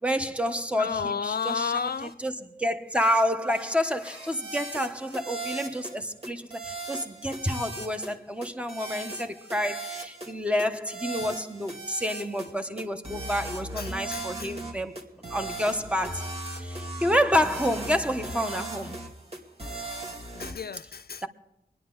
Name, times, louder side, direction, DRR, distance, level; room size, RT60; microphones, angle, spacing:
voice 1, 0.0-1.7 2.2-14.9 15.3-19.0, equal, 5° right, 1.2 m, -29 dB
voice 2, 0.8-2.2 11.2-11.3 13.8-14.6 20.3-21.3, left 6 dB, 70° left, 0.4 m, -32 dB
sound 1, 1.3-1.6 1.9-2.1 2.9-3.2 3.5-6.0 6.2-8.2 8.4-10.3 10.6-12.5 12.8-20.5, right 2 dB, 35° right, 2.5 m, -38 dB
24.5 x 10.0 x 3.9 m
wide cardioid pair, 50°, 17 cm